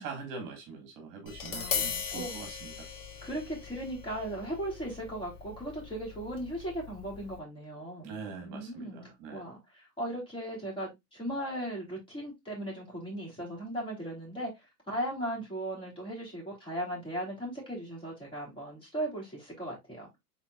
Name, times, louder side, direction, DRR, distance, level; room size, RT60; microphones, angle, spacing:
voice 1, 0.0-2.9 8.0-9.5, right 4 dB, 45° right, 1.8 m, -43 dB
Tap, 1.3-7.4, left 7 dB, 70° left, 1.8 m, -39 dB
voice 2, 1.5-2.4 3.2-20.1, right 1 dB, 10° left, 3.3 m, -37 dB
5.8 x 3.9 x 2.4 m
hypercardioid pair, 120°, 48 cm